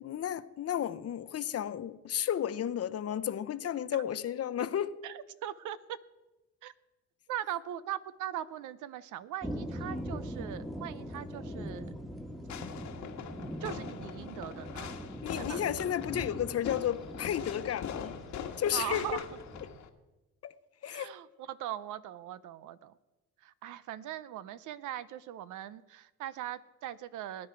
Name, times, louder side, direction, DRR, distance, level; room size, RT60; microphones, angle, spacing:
voice 1, 0.0-4.9 15.2-18.1 18.6-19.2 20.4-20.5 20.8-21.1, left 10 dB, 55° left, 0.7 m, -33 dB
voice 2, 5.0-6.0 6.6-6.7 7.3-11.9 13.6-14.9 15.3-15.7 18.7-19.2 20.9-23.0 23.4-27.5, right 12 dB, 85° right, 0.7 m, -40 dB
sound 1, 9.4-19.7, equal, ahead, 1.5 m, -42 dB
Fireworks, 12.5-19.9, left 7 dB, 70° left, 1.4 m, -42 dB
19.5 x 9.6 x 4.6 m
cardioid pair, 90°, 30 cm